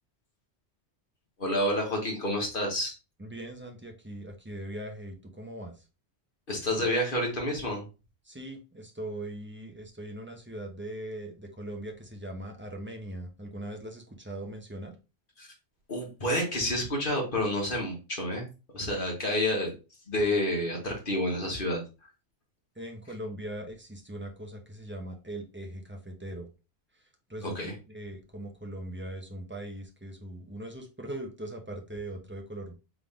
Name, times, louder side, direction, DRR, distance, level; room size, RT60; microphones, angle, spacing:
voice 1, 1.4-2.9 6.5-7.8 15.4-15.5 15.9-18.5 18.7-19.7 20.1-21.8 27.4-27.7, left 1 dB, 50° left, 0 dB, 1.7 m, -29 dB
voice 2, 3.2-5.7 8.2-14.9 22.8-26.5 27.3-27.6 27.9-32.7, right 1 dB, 10° right, 3 dB, 0.7 m, -40 dB
3.7 x 3.6 x 3.5 m, 0.30 s
omnidirectional pair, 1.2 m